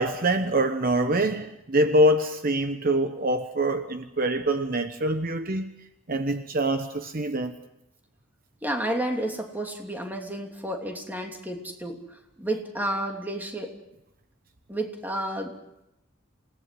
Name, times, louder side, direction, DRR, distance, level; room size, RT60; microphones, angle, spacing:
voice 1, 0.0-5.7 6.1-7.6, right 1 dB, 45° right, 1.1 m, -24 dB
voice 2, 8.6-13.7 14.7-15.6, right 1 dB, 10° right, 2.9 m, -31 dB
28.0 x 18.5 x 7.7 m
head